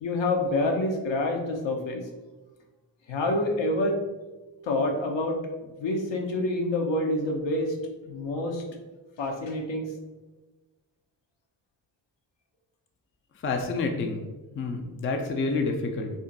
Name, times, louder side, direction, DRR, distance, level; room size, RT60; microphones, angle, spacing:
voice 1, 0.0-2.0 3.1-4.0 4.6-5.4 5.8-7.8 8.1-8.6 9.2-9.9, left 2 dB, 60° left, 2 dB, 0.7 m, -27 dB
voice 2, 13.4-14.2 14.5-16.1, left 3 dB, 25° left, 3 dB, 0.4 m, -28 dB
2.5 x 2.1 x 3.9 m, 1.2 s
supercardioid pair, 40°, 50 cm